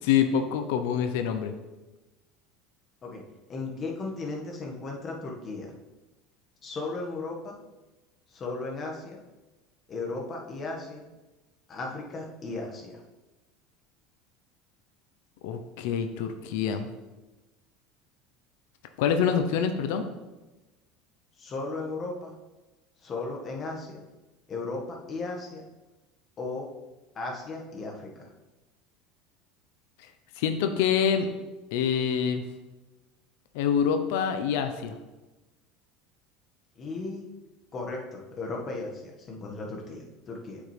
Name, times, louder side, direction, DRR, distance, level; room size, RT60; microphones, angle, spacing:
voice 1, 0.0-1.5 15.4-16.9 19.0-20.1 30.4-31.3 31.7-32.4 33.5-35.0, left 7 dB, 75° left, 8 dB, 0.6 m, -26 dB
voice 2, 3.5-5.7 6.6-7.6 8.3-9.2 9.9-11.1 11.7-13.0 21.4-22.3 23.0-24.0 24.5-25.6 26.4-26.7 27.1-28.1 36.7-37.2 37.7-40.6, left 3 dB, 35° left, 0 dB, 1.5 m, -36 dB
8.3 x 5.2 x 3.3 m, 1.1 s
supercardioid pair, 105°, 0 cm